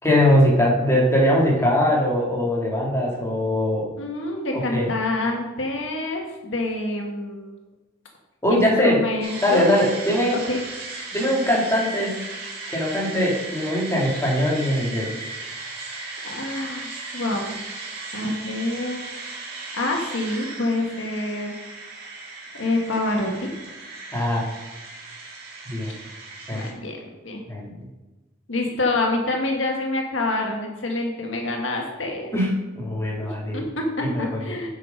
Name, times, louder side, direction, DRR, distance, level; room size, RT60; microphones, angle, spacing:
voice 1, 0.0-3.9 4.5-4.9 8.4-9.0 9.4-10.4 11.1-12.2 12.7-15.1 24.1-24.5 25.7-26.0 26.5-26.7 27.5-27.7 32.3-33.6 34.0-34.7, left 1 dB, 15° left, -4 dB, 2.2 m, -21 dB
voice 2, 4.0-7.5 8.5-9.7 10.3-10.6 16.2-17.5 18.1-19.0 19.7-21.6 22.5-23.5 26.5-27.4 28.5-32.3 33.5-34.7, left 2 dB, 75° left, 1 dB, 1.5 m, -26 dB
sound 1, 9.2-26.7, right 3 dB, 50° right, 2.3 m, -36 dB
8.0 x 5.8 x 5.4 m, 1.2 s
head